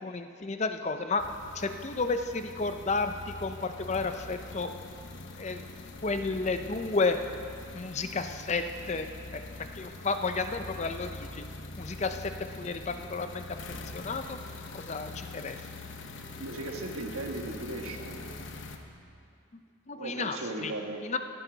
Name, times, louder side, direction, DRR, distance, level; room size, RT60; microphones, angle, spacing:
voice 1, 0.0-1.2 1.5-4.7 5.4-5.6 6.0-7.2 7.7-9.1 9.3-9.4 9.7-11.4 11.8-12.3 12.6-13.6 13.9-14.4 14.7-15.6 19.5-19.6 19.9-20.4 20.6-20.7 21.0-21.2, left 3 dB, 30° left, 8 dB, 0.5 m, -32 dB
sound 1, 1.2-18.8, left 2 dB, 55° left, 0.9 m, -44 dB
voice 2, 16.4-18.3 20.0-21.0, right 2 dB, 80° right, 3 dB, 1.4 m, -37 dB
17.5 x 12.0 x 4.0 m, 2.4 s
head